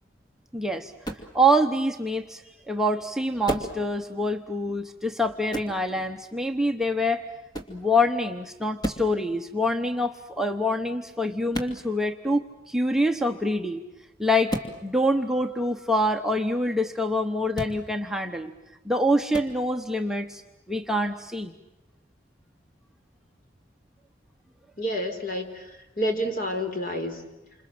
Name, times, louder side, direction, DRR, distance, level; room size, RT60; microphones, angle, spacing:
voice 1, 0.5-0.9 1.3-2.4 2.7-7.3 7.7-13.8 14.2-14.6 14.8-18.5 18.8-20.4 20.7-21.5, equal, ahead, 4 dB, 1.0 m, -25 dB
sound 1, 1.0-1.3 3.4-3.8 5.5-5.8 7.5-7.8 8.8-9.1 11.5-11.8 14.5-14.7 17.5-17.8 19.3-19.5, equal, 25° left, 2.8 m, -31 dB
voice 2, 24.8-27.2, equal, 50° left, 5 dB, 4.2 m, -29 dB
28.5 x 27.0 x 7.7 m, 1.0 s
head